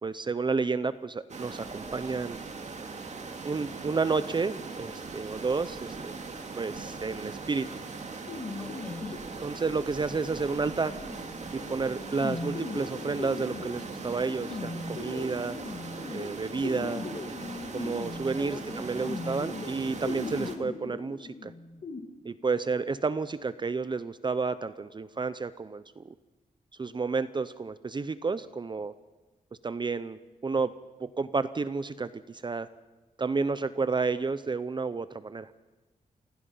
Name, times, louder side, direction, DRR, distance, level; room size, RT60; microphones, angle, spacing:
voice 1, 0.0-2.4 3.4-6.1 6.6-7.7 9.4-11.0 11.5-15.6 16.1-17.1 17.7-21.5 22.2-26.1 26.8-28.9 29.6-30.7 31.0-32.7 33.2-35.5, right 4 dB, 30° right, 14 dB, 0.6 m, -31 dB
sound 1, 1.3-20.6, right 4 dB, 50° right, 2.2 m, -40 dB
sound 2, 8.3-22.0, left 3 dB, 50° left, 2.1 m, -39 dB
voice 2, 8.6-9.2 16.8-17.7 18.4-19.1, left 1 dB, 10° left, 12 dB, 0.9 m, -45 dB
29.0 x 16.5 x 5.6 m, 1.2 s
wide cardioid pair, 145°, 15 cm